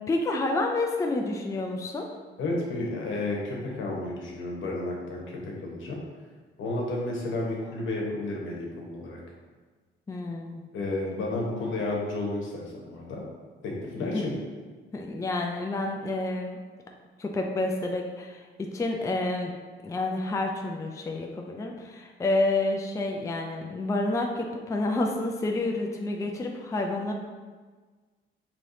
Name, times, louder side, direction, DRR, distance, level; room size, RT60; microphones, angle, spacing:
voice 1, 0.1-2.1 10.1-10.6 14.1-14.2 14.9-16.6 17.2-19.5 19.8-27.1, left 2 dB, 15° left, 2 dB, 0.4 m, -29 dB
voice 2, 2.4-6.0 6.6-9.2 10.7-13.2 13.6-14.3, left 2 dB, 75° left, -2 dB, 1.1 m, -32 dB
4.7 x 3.1 x 2.7 m, 1.4 s
cardioid pair, 90°, 20 cm